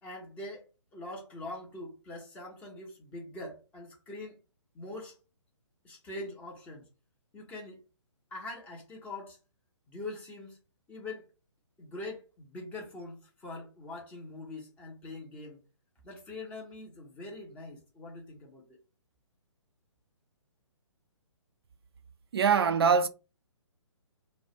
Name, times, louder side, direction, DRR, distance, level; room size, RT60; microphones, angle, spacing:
voice 1, 0.0-0.7 0.9-4.4 4.7-5.2 5.8-6.9 7.3-7.8 8.3-9.4 9.9-10.6 10.9-11.2 11.8-15.6 16.0-18.8, left 2 dB, 10° left, 0.5 m, -43 dB
voice 2, 22.3-23.1, right 6 dB, 50° right, 0.4 m, -23 dB
2.3 x 2.0 x 2.8 m
figure-of-eight pair, 130°, 16 cm